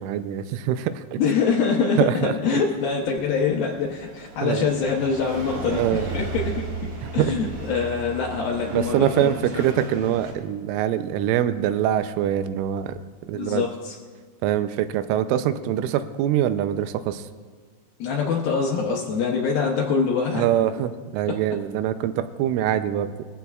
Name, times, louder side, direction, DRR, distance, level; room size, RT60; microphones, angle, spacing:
voice 1, 0.0-1.2 2.0-2.6 4.4-4.7 5.7-6.1 7.2-7.3 8.7-13.0 13.3-13.6 14.4-17.3 20.3-23.1, right 11 dB, 90° right, 11 dB, 3.2 m, -24 dB
voice 2, 1.2-9.6 13.3-14.0 18.0-20.5 21.3-21.4, left 5 dB, 85° left, -1 dB, 2.0 m, -24 dB
sound 1, 2.8-10.3, right 3 dB, 50° right, 1.7 m, -35 dB
21.5 x 14.5 x 2.4 m, 1.5 s
omnidirectional pair, 5.5 m